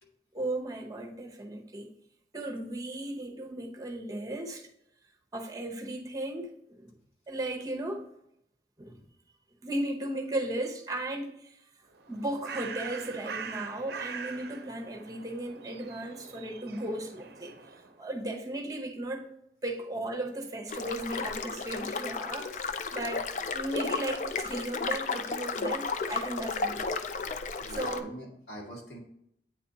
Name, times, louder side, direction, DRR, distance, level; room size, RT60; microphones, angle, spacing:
voice 1, 0.3-1.9 2.3-4.7 5.3-6.5 6.8-6.9 7.3-8.1 8.8-9.0 9.6-11.6 12.1-19.3 19.6-27.1 27.7-28.1, right 1 dB, 20° right, 0.8 m, -36 dB
Bird, 11.9-18.0, right 5 dB, 65° right, 0.6 m, -43 dB
sound 1, 20.7-28.0, left 4 dB, 45° left, 0.4 m, -33 dB
voice 2, 27.6-29.0, equal, 75° left, 1.9 m, -43 dB
8.8 x 4.2 x 2.8 m
head